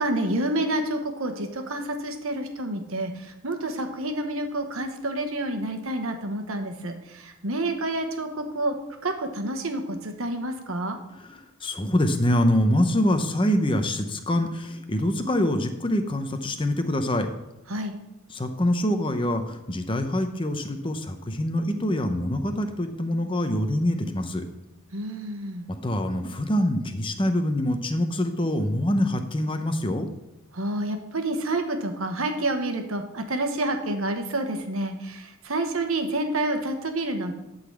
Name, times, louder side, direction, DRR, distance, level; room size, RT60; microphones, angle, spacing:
voice 1, 0.0-8.7 9.0-11.0 17.7-17.9 24.9-25.6 30.5-37.4, right 1 dB, 75° right, 6 dB, 1.2 m, -29 dB
voice 2, 11.2-17.3 18.3-24.4 25.7-30.1, left 1 dB, 25° left, 7 dB, 0.7 m, -25 dB
11.5 x 4.0 x 7.2 m, 0.93 s
head